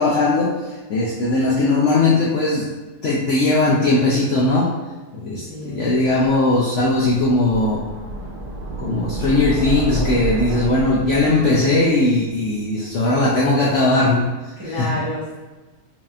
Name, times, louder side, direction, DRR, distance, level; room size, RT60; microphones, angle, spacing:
voice 1, 0.0-2.7 3.0-4.7 5.1-7.9 8.8-14.3 14.6-15.1, left 2 dB, 65° left, -5 dB, 0.8 m, -19 dB
voice 2, 5.3-6.0 14.6-15.4, left 1 dB, 15° right, -9 dB, 0.8 m, -30 dB
sound 1, 6.0-13.0, right 2 dB, 80° right, 1.3 m, -30 dB
4.5 x 2.9 x 2.4 m, 1.2 s
omnidirectional pair, 1.7 m